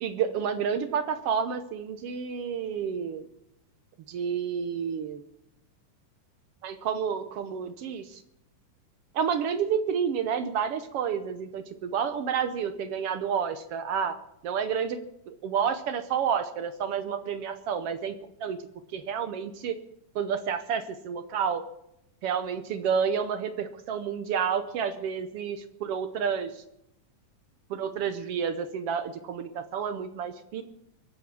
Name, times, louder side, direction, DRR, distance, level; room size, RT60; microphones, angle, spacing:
voice 1, 0.0-3.3 4.1-5.2 6.6-8.2 9.1-14.2 14.4-15.0 15.3-18.1 18.4-18.6 18.9-19.7 20.1-21.6 22.2-26.6 27.7-30.6, right 7 dB, 75° right, 10 dB, 1.3 m, -30 dB
23.5 x 8.0 x 6.9 m, 0.81 s
omnidirectional pair, 3.8 m